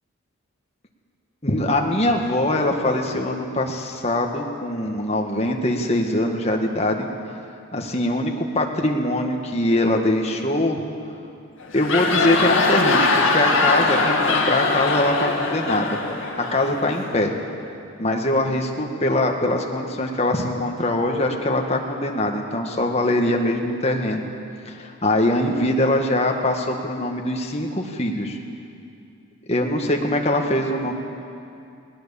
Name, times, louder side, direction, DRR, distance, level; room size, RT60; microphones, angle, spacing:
voice 1, 1.4-7.1 7.7-10.8 11.7-16.0 16.4-17.3 18.0-24.3 24.7-28.4 29.5-30.9, left 1 dB, 30° left, 2 dB, 1.7 m, -22 dB
sound 1, 11.6-17.2, left 3 dB, 65° left, 2.2 m, -21 dB
20.0 x 19.0 x 7.1 m, 2.5 s
head